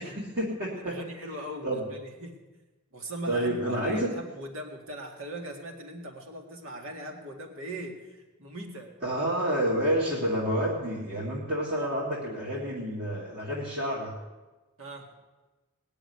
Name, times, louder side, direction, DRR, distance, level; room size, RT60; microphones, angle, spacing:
voice 1, 0.0-1.0 1.6-1.9 3.2-4.1 9.0-14.1, right 1 dB, 45° right, -5 dB, 2.4 m, -29 dB
voice 2, 0.7-2.3 2.9-8.9 14.8-15.1, equal, 65° right, 2 dB, 2.1 m, -40 dB
19.5 x 6.9 x 9.6 m, 1.2 s
head